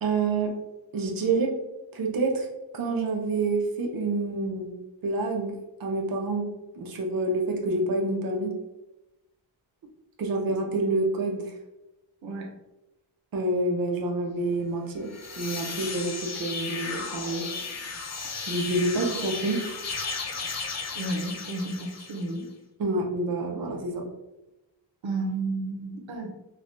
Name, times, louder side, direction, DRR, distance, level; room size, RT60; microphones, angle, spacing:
voice 1, 0.0-0.5 0.9-1.5 1.9-2.5 2.7-4.7 5.0-5.5 5.8-6.5 6.8-8.6 10.2-11.4 13.3-15.1 15.4-17.5 18.5-19.7 22.8-24.0, right 2 dB, 50° right, 1 dB, 0.6 m, -27 dB
sound 1, 15.0-22.4, left 4 dB, 40° left, 0.4 m, -35 dB
voice 2, 20.9-22.5 25.0-26.3, right 2 dB, 90° right, 2 dB, 0.6 m, -32 dB
3.2 x 2.1 x 2.5 m, 0.97 s
wide cardioid pair, 100°, 46 cm